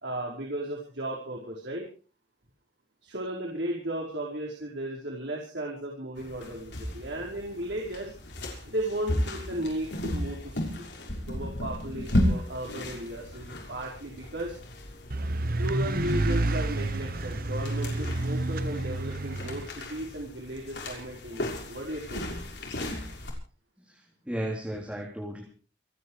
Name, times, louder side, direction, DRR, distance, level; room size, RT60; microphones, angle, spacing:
voice 1, 0.0-1.8 3.0-8.1 8.6-10.8 11.3-14.6 15.6-22.2, right 1 dB, 80° right, -2 dB, 5.1 m, -35 dB
sound 1, 6.2-23.3, left 1 dB, 75° left, 6.3 m, -35 dB
sound 2, 15.1-19.7, right 2 dB, 55° right, 1.2 m, -29 dB
voice 2, 23.8-25.4, right 1 dB, 5° right, -1 dB, 3.6 m, -35 dB
28.5 x 9.9 x 4.9 m, 0.40 s
head